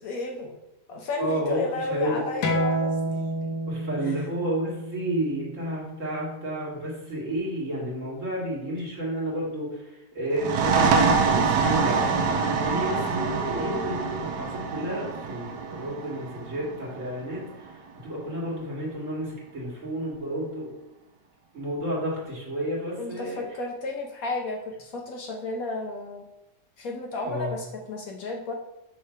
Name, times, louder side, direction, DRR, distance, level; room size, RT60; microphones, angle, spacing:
voice 1, 0.0-0.6 0.9-3.5 4.0-4.2 13.6-13.9 23.0-26.2 26.8-28.5, left 3 dB, 65° left, 1 dB, 1.1 m, -33 dB
voice 2, 1.2-2.2 3.7-20.7 21.5-23.4 27.2-27.5, right 1 dB, 50° right, -5 dB, 2.3 m, -31 dB
sound 1, 2.4-7.6, right 1 dB, 80° left, 1.5 m, -31 dB
sound 2, 10.3-17.7, right 5 dB, 75° right, 1.2 m, -25 dB
5.7 x 3.2 x 5.5 m, 0.94 s
omnidirectional pair, 1.8 m